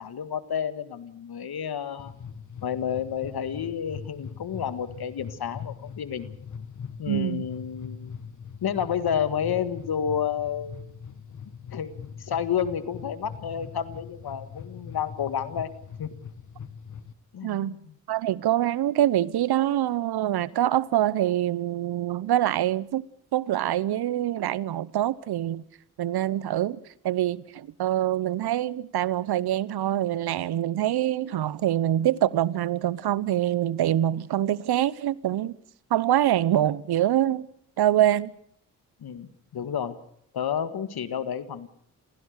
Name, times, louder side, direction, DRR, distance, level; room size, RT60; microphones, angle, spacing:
voice 1, 0.0-2.1 2.6-6.3 7.0-8.1 8.6-10.9 11.7-15.7 16.0-16.1 17.3-17.9 39.0-40.0 40.3-41.7, left 8 dB, 60° left, 1.8 m, -30 dB
sound 1, 2.0-17.1, left 7 dB, 45° left, 1.6 m, -42 dB
voice 2, 7.1-7.4 17.4-17.7 18.1-23.0 23.3-25.6 26.0-26.8 27.0-35.5 35.9-37.5 37.8-38.3, right 12 dB, 65° right, 0.9 m, -25 dB
26.5 x 16.5 x 6.6 m
supercardioid pair, 50°, 41 cm